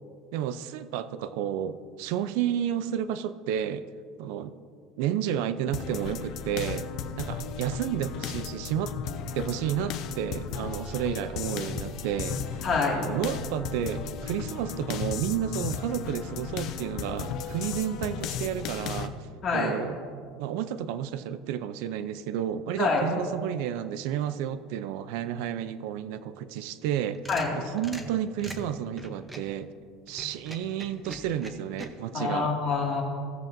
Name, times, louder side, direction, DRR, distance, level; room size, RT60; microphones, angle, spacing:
voice 1, 0.3-3.8 4.2-4.5 5.0-6.9 7.2-9.0 9.3-12.7 13.1-19.1 19.5-20.0 20.4-27.3 27.6-29.7 30.1-32.5, right 10 dB, 70° right, 13 dB, 0.4 m, -31 dB
sound 1, 5.7-19.1, left 7 dB, 45° left, 0.5 m, -35 dB
voice 2, 12.6-13.0 19.4-19.7 22.8-23.0 27.3-27.5 32.1-33.0, left 4 dB, 30° left, -2 dB, 2.0 m, -26 dB
sound 2, 26.9-29.5 30.1-31.9, equal, 5° right, 0.7 m, -42 dB
16.5 x 7.3 x 2.6 m, 2.2 s
cardioid pair, 165°, 0 cm